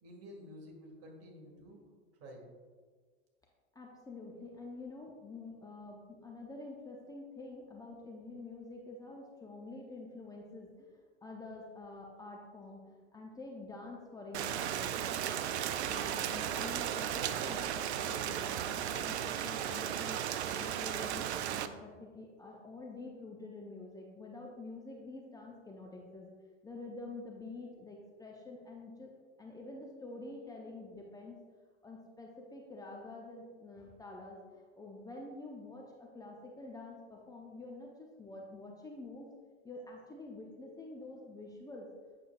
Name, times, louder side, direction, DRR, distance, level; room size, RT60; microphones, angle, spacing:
voice 1, 0.0-1.8 2.2-2.5, equal, 45° right, 0 dB, 2.1 m, -51 dB
voice 2, 3.7-15.0 15.8-20.2 20.5-26.3 26.6-29.1 29.4-31.4 31.8-39.3 39.6-41.9, left 2 dB, 10° left, -1 dB, 0.8 m, -48 dB
Rain, 14.3-21.7, right 10 dB, 65° right, 0.5 m, -35 dB
8.4 x 6.6 x 2.4 m, 1.5 s
figure-of-eight pair, 85°, 35 cm